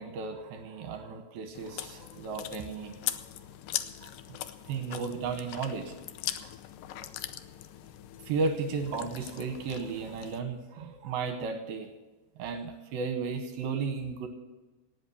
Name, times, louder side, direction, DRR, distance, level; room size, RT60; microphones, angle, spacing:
voice 1, 0.0-3.3 4.0-4.4 4.7-5.9 6.4-6.5 7.0-7.1 8.3-11.9 12.4-14.3, right 5 dB, 70° right, 7 dB, 2.7 m, -34 dB
Chewing mastication, 1.5-10.4, left 12 dB, 90° left, 1.8 m, -40 dB
18.5 x 7.9 x 7.0 m, 1.2 s
omnidirectional pair, 4.7 m